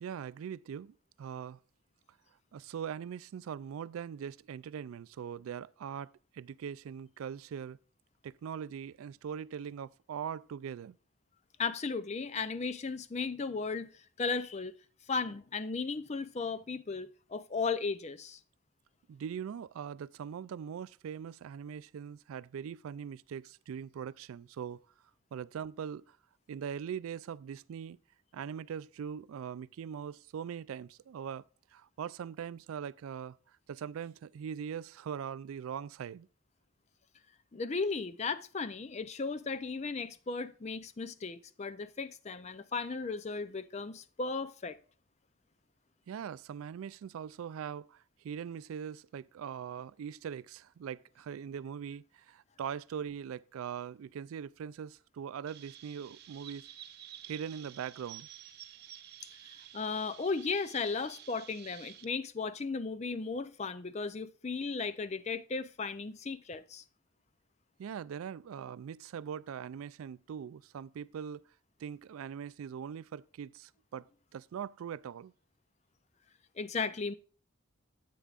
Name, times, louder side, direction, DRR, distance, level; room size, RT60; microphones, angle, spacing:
voice 1, 0.0-1.6 2.5-7.8 8.2-11.0 19.1-24.8 25.3-26.2 26.5-28.0 28.3-31.4 31.7-33.4 33.7-36.3 46.1-56.7 57.3-58.3 67.8-71.4 71.8-75.3, right 8 dB, 85° right, 0.3 m, -41 dB
voice 2, 11.6-14.7 15.1-18.4 37.5-44.8 59.7-66.8 76.6-77.1, left 4 dB, 30° left, 0.4 m, -35 dB
Chirp tweet, 55.5-62.0, right 11 dB, 50° right, 0.7 m, -51 dB
10.0 x 8.4 x 2.4 m
head